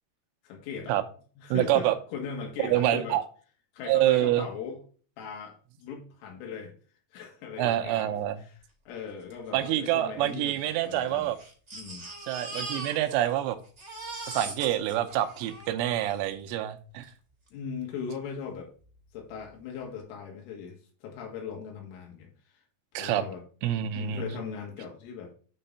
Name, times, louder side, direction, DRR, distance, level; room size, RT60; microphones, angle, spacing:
voice 1, 0.4-1.0 1.4-3.2 3.7-4.8 5.2-6.7 7.1-8.6 8.9-11.3 11.7-12.1 17.5-18.7 19.1-22.3 23.0-23.4 23.9-25.3, left 6 dB, 80° left, 4.3 m, -39 dB
voice 2, 1.5-2.0 2.6-3.2 3.8-4.4 7.6-8.4 9.5-11.4 12.3-13.6 14.3-17.1 22.9-23.2 23.6-24.4, right 13 dB, 85° right, 3.3 m, -26 dB
Crying sobbing, 9.3-9.4 9.6-9.7 10.5-13.4 13.6-16.2 17.0-17.1 17.5-17.6, right 2 dB, 45° right, 0.8 m, -41 dB
8.9 x 3.7 x 5.5 m
omnidirectional pair, 5.6 m